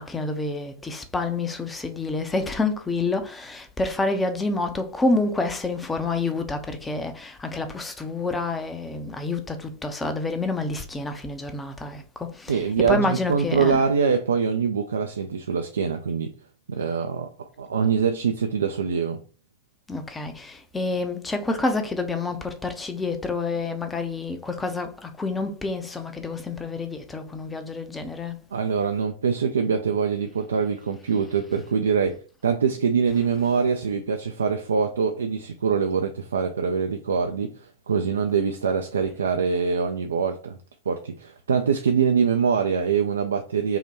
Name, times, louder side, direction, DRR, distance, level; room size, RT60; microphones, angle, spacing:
voice 1, 0.0-13.8 19.9-28.4, left 3 dB, 15° left, 0.6 m, -28 dB
voice 2, 12.5-16.3 16.7-19.2 28.5-40.6 40.9-43.8, right 6 dB, 70° right, 0.3 m, -24 dB
5.5 x 2.2 x 2.9 m
figure-of-eight pair, 90°, 0 cm